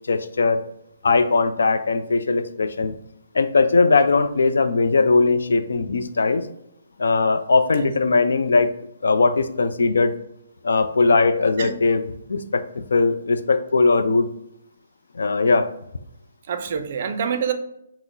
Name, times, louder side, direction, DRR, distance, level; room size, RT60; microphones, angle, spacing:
voice 1, 0.1-0.6 1.0-2.9 3.3-6.5 7.0-8.7 9.0-10.2 10.6-12.0 12.3-14.3 15.1-15.7, left 3 dB, 80° left, 9 dB, 0.4 m, -19 dB
voice 2, 16.5-17.5, right 7 dB, 35° right, 7 dB, 0.4 m, -26 dB
5.8 x 2.0 x 3.9 m, 0.79 s
hypercardioid pair, 175°, 0 cm